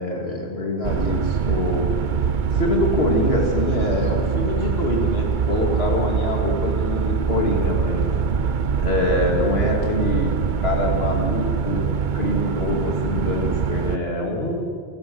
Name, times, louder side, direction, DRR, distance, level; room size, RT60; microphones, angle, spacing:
voice 1, 0.0-1.9 2.2-8.2 8.5-11.9 12.1-14.7, left 1 dB, 80° left, 0 dB, 2.9 m, -25 dB
sound 1, 0.8-14.0, right 6 dB, 55° right, 0.9 m, -23 dB
27.5 x 14.0 x 8.0 m, 2.1 s
omnidirectional pair, 1.0 m